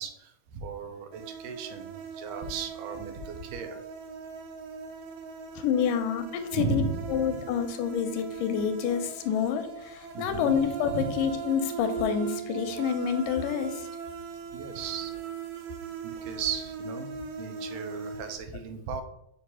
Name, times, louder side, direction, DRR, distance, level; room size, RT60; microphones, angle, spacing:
voice 1, 0.0-3.8 6.5-7.4 10.1-10.6 10.8-11.2 14.5-15.1 16.0-19.0, right 5 dB, 90° right, 6 dB, 2.4 m, -36 dB
sound 1, 1.1-18.3, right 7 dB, 70° right, 1.5 m, -39 dB
voice 2, 5.6-6.8 7.1-13.9, left 8 dB, 85° left, 8 dB, 2.3 m, -28 dB
6.4 x 2.8 x 5.4 m, 0.78 s
omnidirectional pair, 3.7 m